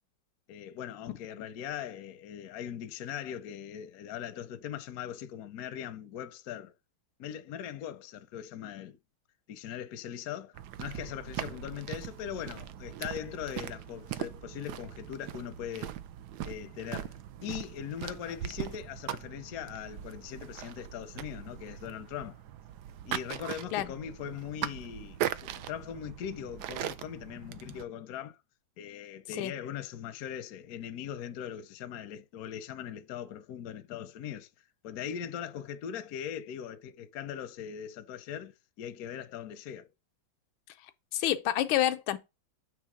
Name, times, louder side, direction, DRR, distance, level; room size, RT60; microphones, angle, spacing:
voice 1, 0.5-6.7 7.2-9.0 9.5-15.9 16.4-17.2 17.4-22.4 23.0-28.4 28.8-34.5 34.8-39.9, left 9 dB, 70° left, 0.9 m, -40 dB
sound 1, 10.5-27.9, right 11 dB, 75° right, 1.0 m, -40 dB
voice 2, 41.1-42.2, left 12 dB, 90° left, 1.4 m, -28 dB
7.3 x 3.2 x 4.8 m
omnidirectional pair, 2.2 m